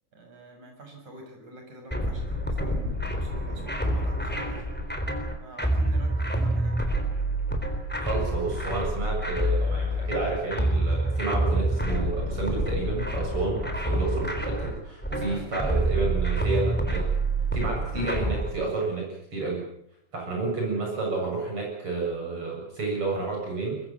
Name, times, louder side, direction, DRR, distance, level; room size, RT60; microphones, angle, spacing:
voice 1, 0.1-4.6 5.4-6.9 13.4-13.6 15.1-15.7, right 2 dB, 70° right, 4 dB, 7.8 m, -45 dB
sound 1, 1.9-18.5, right 1 dB, 5° left, 3.5 m, -27 dB
voice 2, 8.0-17.1 17.5-19.7 20.1-23.8, right 3 dB, 45° right, -1 dB, 8.5 m, -30 dB
24.0 x 22.0 x 7.5 m, 0.70 s
omnidirectional pair, 3.4 m